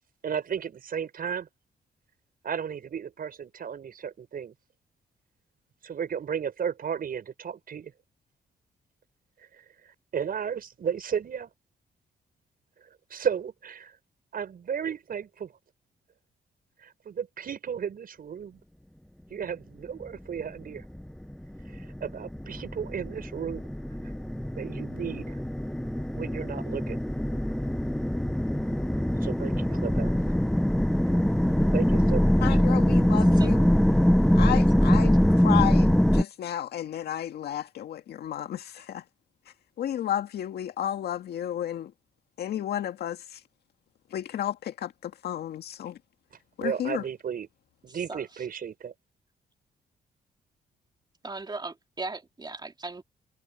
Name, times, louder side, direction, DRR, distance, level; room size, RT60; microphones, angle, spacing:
voice 1, 0.2-1.5 2.4-4.5 5.8-7.9 9.4-11.5 13.1-14.0 14.3-15.5 16.8-18.6 19.3-20.8 21.6-23.7 24.0-24.1 24.6-25.4 26.1-27.0 29.2-30.1 31.7-32.6 46.6-47.5 47.8-48.9, right 7 dB, 60° right, 6.5 m, -34 dB
sound 1, 20.8-36.2, equal, 5° left, 0.9 m, -23 dB
voice 2, 32.4-33.7 34.3-39.0 39.8-41.9 42.4-43.4 44.1-46.0 46.6-47.0, left 11 dB, 80° left, 2.1 m, -32 dB
voice 3, 47.9-48.5 51.2-53.0, right 3 dB, 25° right, 2.7 m, -38 dB
cardioid pair, 70°, 17 cm